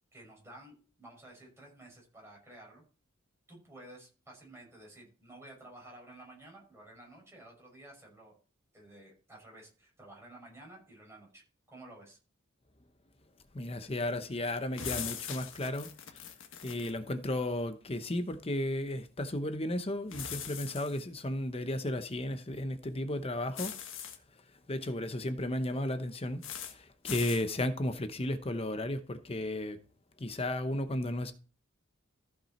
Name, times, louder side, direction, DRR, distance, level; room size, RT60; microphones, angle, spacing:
voice 1, 0.1-2.8 3.5-8.3 8.7-11.4 11.7-12.2, right 1 dB, 15° right, 6.2 m, -53 dB
voice 2, 13.5-16.2 16.6-23.7 24.7-29.8 30.2-31.3, left 1 dB, 30° left, 0.8 m, -34 dB
sound 1, 14.8-16.9 20.1-21.0 23.5-24.2 26.4-26.7 27.1-27.4, left 8 dB, 65° left, 1.5 m, -41 dB
14.5 x 6.1 x 4.3 m
head